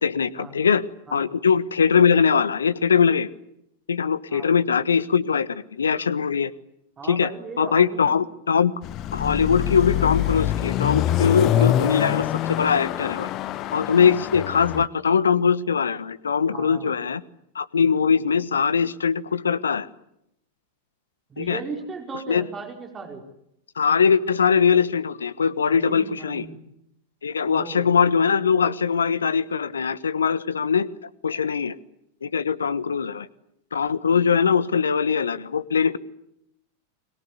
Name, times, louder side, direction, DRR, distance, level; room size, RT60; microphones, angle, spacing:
voice 1, 0.0-3.3 3.9-6.5 7.1-7.3 7.6-8.7 9.1-12.3 12.6-13.3 13.7-17.2 17.5-19.9 21.4-21.6 22.3-22.5 23.8-26.5 27.2-30.9 31.2-31.7 32.2-33.3 33.7-36.0, left 6 dB, 70° left, 18 dB, 1.2 m, -21 dB
voice 2, 7.0-8.2 14.0-14.1 16.5-16.9 21.3-23.2 25.7-26.6 27.4-27.9, right 4 dB, 20° right, 3 dB, 4.8 m, -37 dB
Car passing by / Accelerating revving vroom, 8.8-14.9, left 12 dB, 35° left, 1.1 m, -25 dB
30.0 x 22.5 x 8.4 m, 0.79 s
figure-of-eight pair, 90°, 0 cm